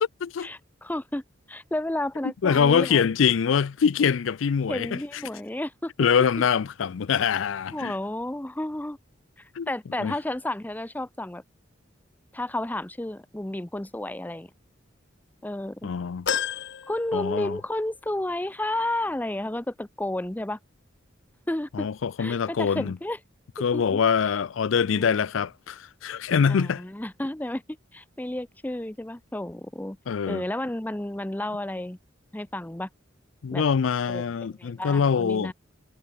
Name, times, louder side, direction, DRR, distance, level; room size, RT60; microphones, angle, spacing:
voice 1, 0.4-1.2 1.5-3.0 4.7-5.9 7.7-9.0 9.4-11.4 12.3-14.5 15.4-15.9 16.9-20.6 21.5-21.9 22.2-23.2 23.7-24.0 26.5-27.6 27.9-30.0 30.3-32.0 32.3-32.9 33.5-33.6 34.1-34.2 34.6-35.5, left 1 dB, 10° left, 0.6 m, -31 dB
voice 2, 2.4-5.0 6.0-7.9 9.6-9.7 10.0-10.1 15.8-16.3 17.1-17.6 21.7-23.0 23.6-26.8 30.1-30.4 33.4-35.5, left 6 dB, 90° left, 0.4 m, -24 dB
sound 1, 16.3-17.9 18.3-18.4 19.6-19.7, left 8 dB, 65° left, 0.8 m, -32 dB
head